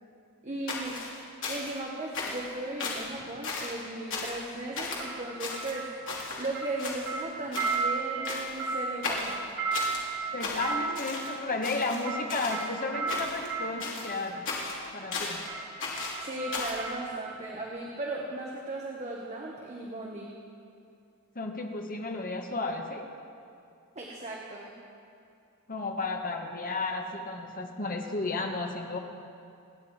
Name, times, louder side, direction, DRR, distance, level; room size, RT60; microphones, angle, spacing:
voice 1, 0.4-1.0 1.5-5.9 6.4-9.5 16.2-20.3 23.9-24.7, right 2 dB, 30° right, -2 dB, 1.5 m, -37 dB
sound 1, 0.7-1.8 2.1-2.5 2.8-3.1 3.4-3.8 4.1-4.4 4.8-5.0 5.4-6.5 6.8-7.3 7.5-7.8 8.2-8.6 9.0-10.0 10.4-11.3 11.6-12.7 13.1-13.5 13.8-15.5 15.8-16.8, left 3 dB, 60° left, 3.0 m, -35 dB
sound 2, 3.1-3.3 5.0-6.3 6.5-14.2 15.0-15.2 15.5-17.4 17.7-17.8, right 4 dB, 65° right, 5.0 m, -35 dB
voice 2, 10.3-14.5 14.9-15.4 21.3-23.1 25.7-29.0, left 3 dB, 40° left, 3 dB, 1.5 m, -33 dB
28.5 x 10.5 x 4.4 m, 2.4 s
head